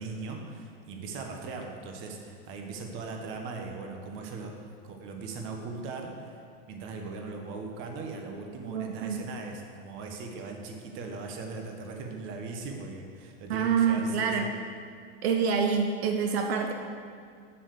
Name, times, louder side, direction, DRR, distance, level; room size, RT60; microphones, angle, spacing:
voice 1, 0.0-4.5 4.8-6.4 6.7-14.5, right 3 dB, 40° right, 3 dB, 1.4 m, -39 dB
voice 2, 8.7-9.2 13.5-14.5 15.2-16.7, right 6 dB, 75° right, 4 dB, 0.9 m, -26 dB
7.5 x 6.9 x 6.6 m, 2.2 s
supercardioid pair, 145°, 32 cm